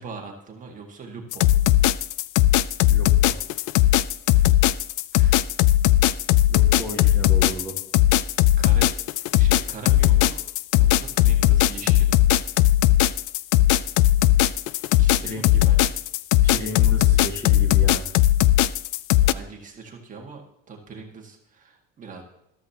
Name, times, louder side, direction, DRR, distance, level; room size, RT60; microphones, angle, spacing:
voice 1, 0.0-1.6 4.3-4.5 4.7-4.8 5.1-5.4 8.6-8.9 9.4-10.4 10.7-12.2 15.0-16.0 19.2-20.4 20.7-22.2, right 4 dB, 25° right, 1 dB, 1.9 m, -41 dB
sound 1, 1.3-19.3, left 14 dB, 90° left, 0.5 m, -18 dB
voice 2, 2.9-3.4 6.5-7.8 15.2-15.6 16.4-18.1, equal, 10° left, 1 dB, 1.7 m, -34 dB
14.0 x 13.0 x 3.0 m, 0.81 s
cardioid pair, 170°, 29 cm